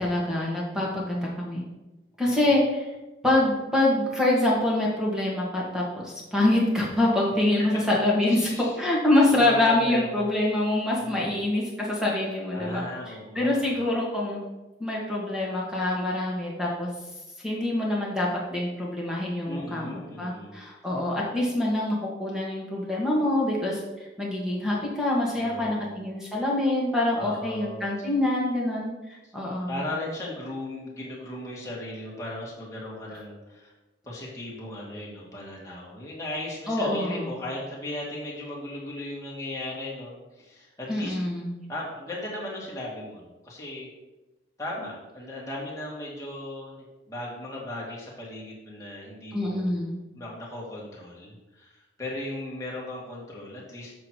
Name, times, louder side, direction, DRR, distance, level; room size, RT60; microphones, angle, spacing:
voice 1, 0.0-1.6 2.2-2.9 3.2-14.4 14.8-16.9 17.4-23.8 24.2-28.9 29.3-29.7 36.7-37.3 40.9-41.6 49.3-50.0, left 1 dB, 5° right, -4 dB, 1.9 m, -25 dB
voice 2, 2.2-2.6 8.3-8.7 9.2-10.3 11.0-11.5 12.5-13.8 19.4-20.6 25.3-25.9 27.2-27.9 29.2-29.3 29.7-33.7 34.1-41.2 41.7-43.9 44.6-49.7 50.1-53.9, left 1 dB, 15° left, -5 dB, 2.1 m, -37 dB
7.7 x 6.3 x 4.5 m, 1.1 s
head